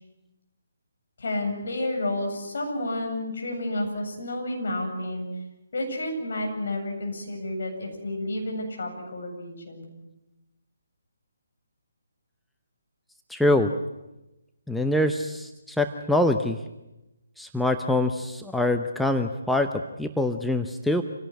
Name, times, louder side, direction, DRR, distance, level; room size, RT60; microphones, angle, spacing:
voice 1, 1.2-5.3 5.7-9.8, left 1 dB, 55° left, 2 dB, 8.0 m, -30 dB
voice 2, 13.3-13.7 14.7-16.6 17.4-21.0, left 1 dB, ahead, 5 dB, 0.8 m, -24 dB
27.5 x 17.5 x 9.7 m, 0.99 s
figure-of-eight pair, 140°, 0 cm